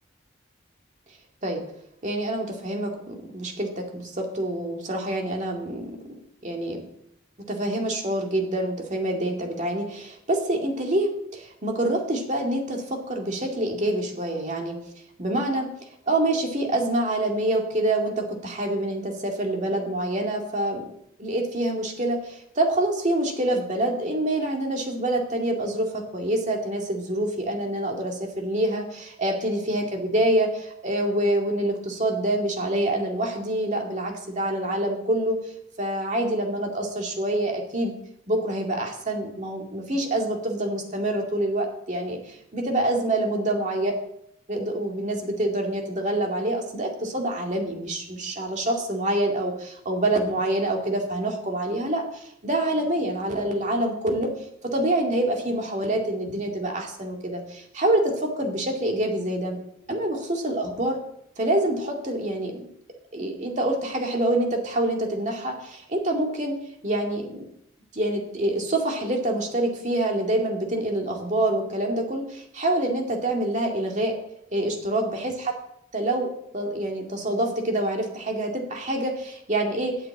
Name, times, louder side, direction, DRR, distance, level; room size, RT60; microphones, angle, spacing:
voice 1, 2.0-6.0 6.4-6.8 7.5-14.7 15.2-15.7 16.1-20.8 21.2-35.4 35.8-37.9 38.3-43.9 44.5-54.3 54.6-59.6 59.9-61.0 61.4-62.7 63.1-66.5 66.8-67.5 67.9-74.1 74.5-75.5 75.9-80.0, right 1 dB, 40° right, 1 dB, 2.3 m, -26 dB
9.0 x 7.9 x 8.6 m, 0.75 s
head